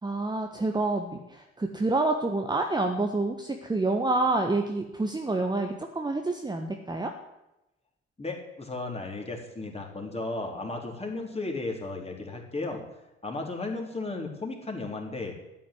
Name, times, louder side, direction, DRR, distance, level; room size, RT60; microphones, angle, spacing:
voice 1, 0.0-7.1, right 2 dB, 10° right, 4 dB, 1.4 m, -28 dB
voice 2, 8.2-12.8 13.2-15.3, left 2 dB, 15° left, 1 dB, 4.1 m, -34 dB
13.0 x 9.3 x 9.6 m, 0.92 s
figure-of-eight pair, 55°, 35 cm